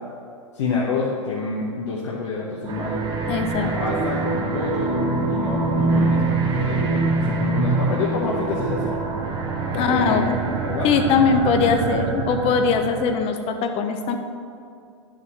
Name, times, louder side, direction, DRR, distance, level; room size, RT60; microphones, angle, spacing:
voice 1, 0.5-3.0 3.6-4.9 5.3-8.9 9.7-10.3 10.6-10.9, left 4 dB, 65° left, -4 dB, 1.1 m, -28 dB
sound 1, 2.6-13.3, right 3 dB, 30° right, 1.0 m, -24 dB
voice 2, 3.3-3.7 9.7-10.2 10.8-14.2, left 5 dB, 40° left, 6 dB, 0.8 m, -21 dB
11.0 x 5.1 x 4.2 m, 2.5 s
hypercardioid pair, 100°, 16 cm